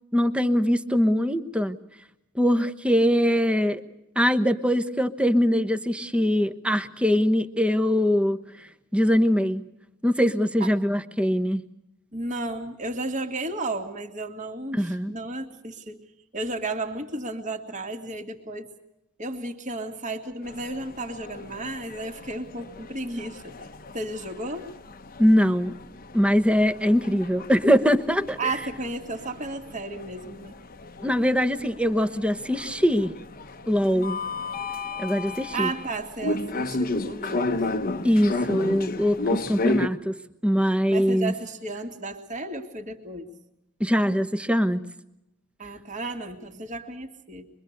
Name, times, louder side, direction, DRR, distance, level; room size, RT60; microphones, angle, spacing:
voice 1, 0.1-1.8 2.3-3.8 4.2-8.4 8.9-9.6 10.0-11.7 14.7-15.1 25.2-25.7 26.1-28.5 31.0-33.1 33.7-34.2 35.0-35.7 38.0-41.3 43.8-44.8, equal, 5° right, 9 dB, 1.1 m, -22 dB
voice 2, 12.1-16.0 16.3-18.7 19.2-23.6 23.9-24.7 28.4-30.6 33.8-34.2 35.5-37.5 40.9-43.3 45.6-47.5, right 2 dB, 35° right, 3 dB, 2.4 m, -33 dB
sound 1, 20.4-39.9, left 2 dB, 40° left, 1.0 m, -33 dB
25.0 x 22.5 x 6.6 m, 0.88 s
head